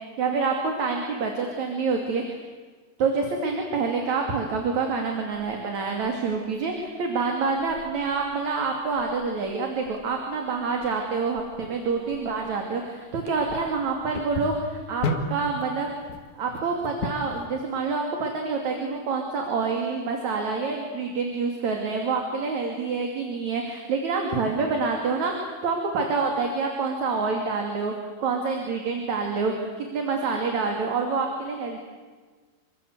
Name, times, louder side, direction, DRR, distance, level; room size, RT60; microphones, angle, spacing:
voice 1, 0.2-2.4 3.0-15.9 16.4-27.9 28.2-31.8, right 4 dB, 50° right, 2 dB, 3.8 m, -27 dB
sound 1, 5.3-17.5, left 2 dB, 55° left, 3.2 m, -37 dB
28.0 x 24.0 x 8.1 m, 1.4 s
omnidirectional pair, 4.6 m